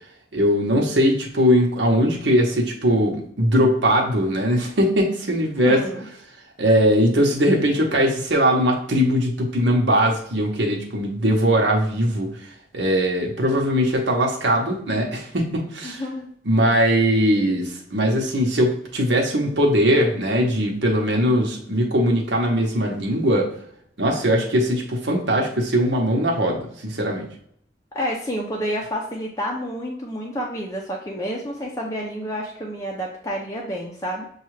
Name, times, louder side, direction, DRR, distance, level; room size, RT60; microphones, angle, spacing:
voice 1, 0.3-5.9 6.6-16.0 16.5-23.5 24.0-27.3, equal, 80° right, 0 dB, 0.9 m, -20 dB
voice 2, 5.6-6.1 15.8-16.3 27.9-34.2, equal, 20° left, -2 dB, 0.5 m, -29 dB
6.7 x 2.4 x 3.2 m, 0.64 s
head